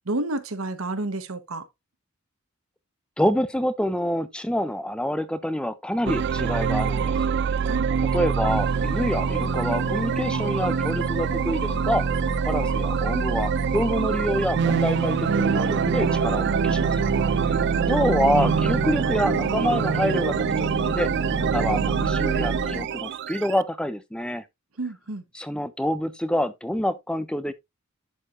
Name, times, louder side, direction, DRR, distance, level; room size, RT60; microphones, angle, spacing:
voice 1, 0.1-1.6 7.6-7.8 24.8-25.2, right 2 dB, 80° right, 1.2 m, -30 dB
voice 2, 3.2-7.3 8.1-12.0 12.4-17.1 17.5-21.1 21.5-24.4 25.3-27.5, equal, 5° left, 0.5 m, -27 dB
sound 1, 6.1-23.6, right 6 dB, 55° right, 0.3 m, -24 dB
sound 2, 8.5-22.8, left 5 dB, 55° left, 1.2 m, -36 dB
11.0 x 4.9 x 2.5 m
head